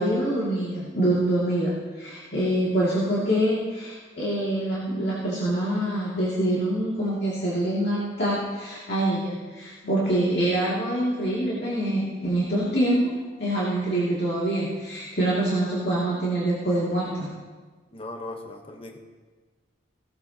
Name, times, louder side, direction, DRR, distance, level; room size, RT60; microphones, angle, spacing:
voice 1, 0.0-13.1 13.4-17.3, right 1 dB, 60° left, -7 dB, 2.5 m, -25 dB
voice 2, 17.9-19.0, left 2 dB, 30° left, 4 dB, 1.0 m, -38 dB
17.0 x 13.0 x 2.9 m, 1.4 s
head